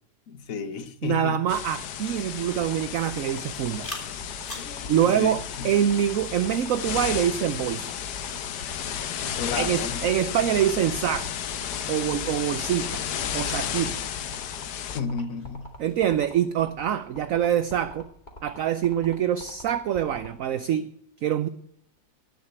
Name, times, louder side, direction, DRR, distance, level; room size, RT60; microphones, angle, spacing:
voice 1, 0.3-1.4 4.5-5.7 9.4-10.1 14.9-15.7, left 5 dB, 60° left, 1.3 m, -32 dB
voice 2, 1.0-3.9 4.9-7.9 9.6-11.3 11.9-13.0 13.3-14.0 15.8-18.1 18.4-20.9 21.2-21.5, right 10 dB, 65° right, 0.9 m, -25 dB
sound 1, 1.5-15.0, left 9 dB, 85° left, 1.5 m, -33 dB
sound 2, 2.5-20.3, left 1 dB, 25° left, 2.5 m, -43 dB
sound 3, 3.5-16.2, left 1 dB, 10° left, 5.1 m, -48 dB
17.5 x 6.5 x 8.1 m
omnidirectional pair, 1.8 m